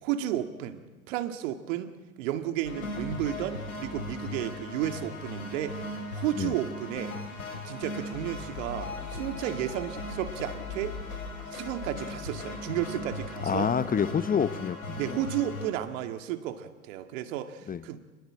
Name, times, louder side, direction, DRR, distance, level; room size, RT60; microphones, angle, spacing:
voice 1, 0.0-7.1 7.6-10.9 11.5-13.7 15.0-18.0, right 11 dB, 65° right, 8 dB, 2.2 m, -33 dB
sound 1, 2.6-15.7, left 2 dB, 90° left, 5.7 m, -38 dB
voice 2, 13.4-15.2 17.7-17.8, left 7 dB, 20° left, 14 dB, 0.9 m, -28 dB
29.5 x 20.0 x 7.6 m, 1.3 s
hypercardioid pair, 90°, 41 cm